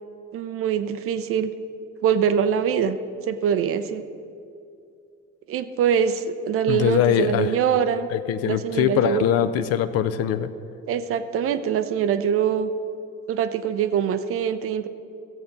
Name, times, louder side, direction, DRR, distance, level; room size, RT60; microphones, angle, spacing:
voice 1, 0.3-1.5 2.0-3.0 3.3-4.0 5.5-8.1 8.4-9.3 10.9-12.7 13.3-14.9, right 8 dB, 40° right, 11 dB, 0.6 m, -23 dB
voice 2, 6.7-7.6 8.1-10.5, left 10 dB, 45° left, 12 dB, 0.5 m, -22 dB
15.0 x 7.6 x 4.0 m, 2.5 s
figure-of-eight pair, 50°, 36 cm